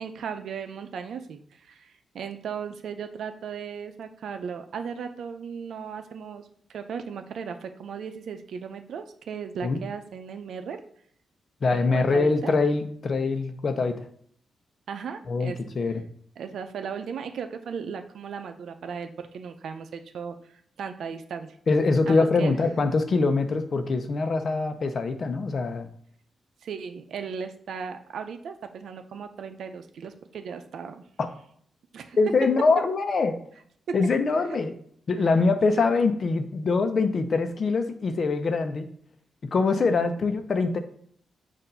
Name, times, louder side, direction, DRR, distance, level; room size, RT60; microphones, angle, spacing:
voice 1, 0.0-10.8 11.7-12.5 14.9-15.7 16.4-21.6 22.1-22.6 26.6-31.0 31.9-32.2 33.9-34.0 35.7-35.8, right 6 dB, 75° right, 8 dB, 0.6 m, -36 dB
voice 2, 11.6-14.0 15.3-16.0 21.7-25.9 31.2-31.3 32.2-33.4 33.9-34.7 35.1-38.9 39.5-40.8, left 4 dB, 55° left, 8 dB, 0.8 m, -23 dB
6.7 x 2.7 x 5.5 m, 0.64 s
cardioid pair, 75°, 0 cm